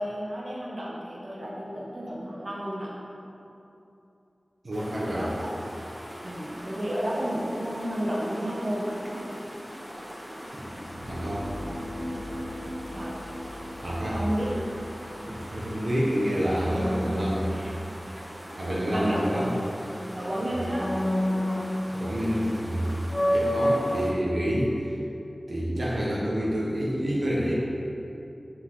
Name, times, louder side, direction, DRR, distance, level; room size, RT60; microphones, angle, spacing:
voice 1, 0.0-2.9 5.0-5.5 6.2-9.2 12.9-13.1 14.1-14.7 17.5-17.7 18.9-19.5 20.1-20.9, equal, 45° right, -5 dB, 1.1 m, -32 dB
voice 2, 4.6-5.3 10.5-11.5 13.8-14.3 15.2-17.6 18.1-18.2 18.6-19.5 20.6-20.7 21.9-22.9 23.3-24.9 25.5-27.5, equal, 70° right, -6 dB, 0.9 m, -28 dB
sound 1, 4.7-24.1, equal, 15° right, 1.1 m, -42 dB
sound 2, 7.0-7.4 16.7-18.1 18.5-20.2 20.7-22.2 22.6-22.7 23.1-23.9, equal, 15° left, 0.6 m, -29 dB
sound 3, 10.6-16.5, left 1 dB, 85° left, 0.9 m, -40 dB
6.1 x 5.6 x 3.1 m, 2.8 s
wide cardioid pair, 65°, 0 cm